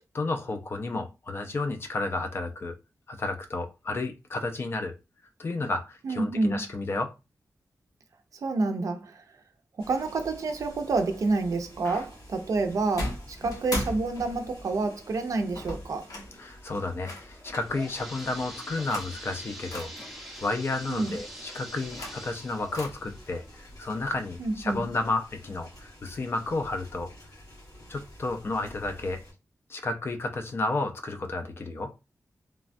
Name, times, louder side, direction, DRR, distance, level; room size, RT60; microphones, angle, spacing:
voice 1, 0.1-2.8 3.1-5.0 5.4-7.1 11.8-12.1 16.4-19.9 20.4-27.1 27.9-29.2 29.7-31.9, left 2 dB, 40° left, 0.4 m, -32 dB
voice 2, 6.0-6.6 8.4-9.2 9.8-16.1 20.9-21.2 24.4-24.8, right 3 dB, 70° right, 0.5 m, -28 dB
sound 1, 9.8-29.3, equal, 90° left, 1.5 m, -50 dB
sound 2, 13.0-14.6 15.5-16.3 17.1-17.7 18.7-19.1 19.7-20.1 21.6-22.4 22.7-22.9, left 1 dB, 70° left, 0.9 m, -36 dB
sound 3, 17.3-24.9 25.4-25.5 26.2-26.3 26.8-26.9, equal, ahead, 0.6 m, -44 dB
3.2 x 2.2 x 2.5 m
wide cardioid pair, 180°, 6 cm